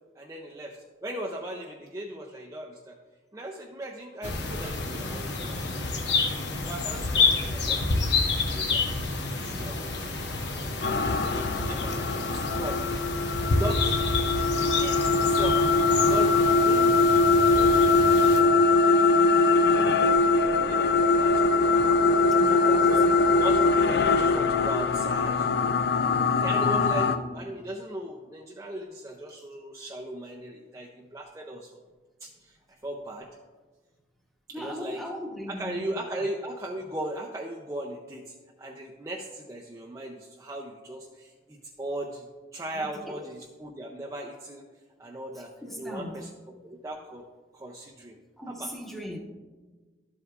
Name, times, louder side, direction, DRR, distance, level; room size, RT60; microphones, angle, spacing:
voice 1, 0.2-3.0 3.3-6.0 6.7-8.0 8.3-8.9 9.3-10.7 11.0-13.0 13.5-19.1 19.6-23.0 23.4-25.8 26.1-31.7 32.2-33.3 34.5-35.1 35.5-44.6 45.0-45.5 45.8-47.3 47.5-48.1 48.5-48.7, right 1 dB, 15° right, -1 dB, 0.5 m, -38 dB
sound 1, 4.2-18.4, left 3 dB, 75° left, 0.9 m, -29 dB
sound 2, 10.8-27.2, left 3 dB, 60° left, 0.4 m, -22 dB
voice 2, 22.3-23.1 34.5-35.8 42.7-43.3 45.3-46.3 48.4-49.2, left 1 dB, ahead, -1 dB, 1.0 m, -38 dB
12.5 x 7.9 x 2.4 m, 1.3 s
head